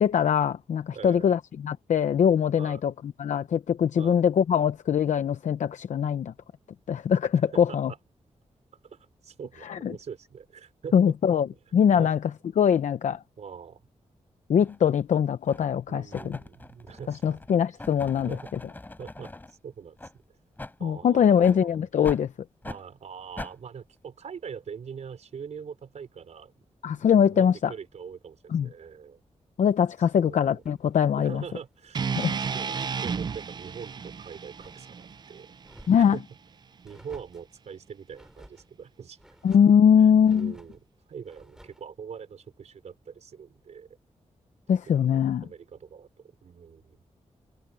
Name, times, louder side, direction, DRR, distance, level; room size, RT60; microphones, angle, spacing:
voice 1, 0.0-2.9 3.2-6.3 6.9-7.9 9.6-9.9 10.9-11.5 11.7-12.2 12.6-13.2 14.5-16.4 17.2-18.4 20.8-22.3 26.8-27.7 28.5-28.7 29.6-31.4 32.2-32.3 35.9-36.2 39.4-40.5 44.7-45.4, left 8 dB, 85° left, 0.7 m, -22 dB
voice 2, 0.9-1.3 2.6-2.8 4.0-4.2 7.4-8.0 8.8-11.2 11.5-11.6 11.9-12.1 13.4-13.8 15.9-17.4 18.1-18.5 19.0-20.0 20.8-21.8 22.6-26.5 26.9-29.2 30.2-30.6 31.1-35.5 36.0-36.2 36.8-39.2 40.0-40.8 41.1-43.9 44.9-46.1 46.4-47.0, right 6 dB, 70° right, 4.7 m, -43 dB
sound 1, 14.6-14.8 15.5-15.8 16.1-19.5 20.0-20.1 20.6-20.8 21.4-21.6 22.0-22.2 22.6-22.8 23.4-23.5, left 2 dB, 15° left, 4.2 m, -41 dB
sound 2, 30.5-32.6 32.9-33.5 33.8-35.2 35.6-36.3 36.8-37.5 38.1-38.7 39.2-39.8 40.2-40.8 41.2-41.9, right 1 dB, 5° right, 7.1 m, -55 dB
sound 3, 31.9-36.1, right 6 dB, 35° right, 0.4 m, -33 dB
wide cardioid pair, 180°, 12 cm